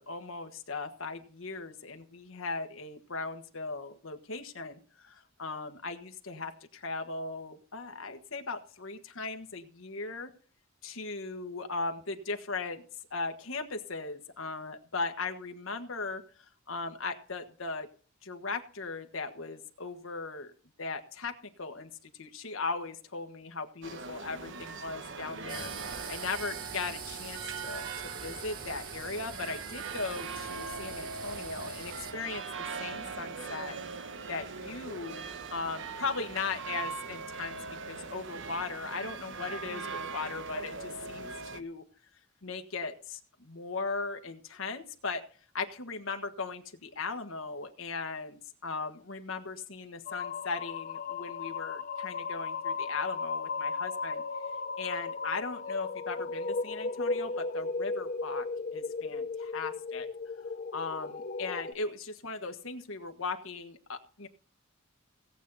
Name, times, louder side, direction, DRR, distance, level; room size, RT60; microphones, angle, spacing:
voice 1, 0.0-10.3 10.8-12.8 13.1-16.2 16.7-17.9 18.2-20.5 20.8-21.9 22.2-27.9 28.2-33.8 34.3-35.2 35.5-37.6 37.9-41.8 42.4-45.2 45.5-54.2 54.8-58.4 58.7-60.1 60.7-64.3, left 4 dB, 70° left, 5 dB, 1.5 m, -38 dB
sound 1, 23.8-41.6, right 5 dB, 65° right, 1.1 m, -41 dB
cicadas birds, 25.5-32.1, right 5 dB, 45° right, 1.8 m, -44 dB
sound 2, 50.1-61.7, left 4 dB, 40° left, 0.7 m, -35 dB
17.5 x 8.3 x 4.2 m, 0.42 s
head